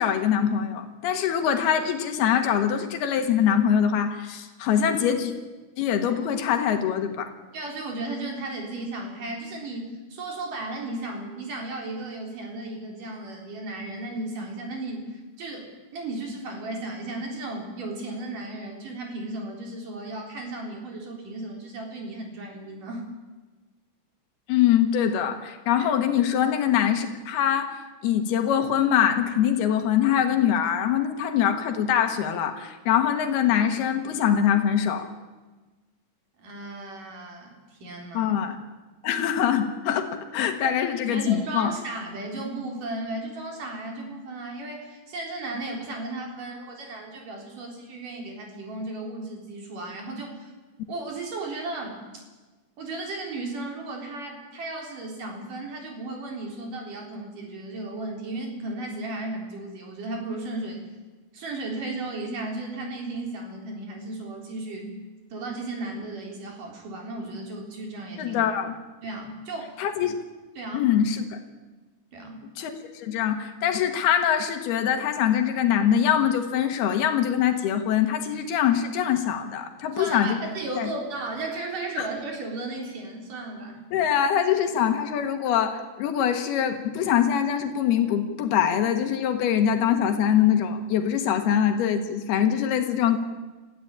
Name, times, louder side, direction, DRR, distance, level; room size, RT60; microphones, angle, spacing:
voice 1, 0.0-5.3 5.8-7.3 24.5-27.7 28.0-35.1 38.2-38.6 39.0-41.7 68.2-68.8 69.8-70.2 70.7-71.4 72.6-80.4 80.7-80.9 82.0-82.1 83.9-93.2, left 9 dB, 85° left, 6 dB, 3.5 m, -23 dB
voice 2, 7.5-23.1 25.8-25.9 36.4-38.4 41.1-50.5 50.9-52.0 52.8-60.8 61.3-64.9 65.3-68.4 69.0-69.8 70.6-70.9 72.1-72.5 79.9-83.8, right 2 dB, 60° right, 1 dB, 5.2 m, -35 dB
27.5 x 14.5 x 8.8 m, 1.3 s
omnidirectional pair, 4.4 m